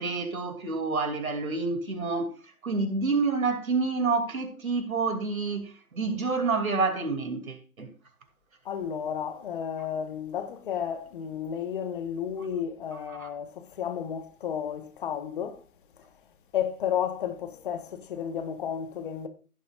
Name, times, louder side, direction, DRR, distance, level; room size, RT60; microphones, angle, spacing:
voice 1, 0.0-2.3 2.6-7.9 13.1-13.3, right 4 dB, 70° right, 2.8 m, -28 dB
voice 2, 8.6-15.6 16.5-19.3, left 8 dB, 35° left, 1.3 m, -32 dB
16.5 x 7.7 x 2.5 m
figure-of-eight pair, 135°, 44 cm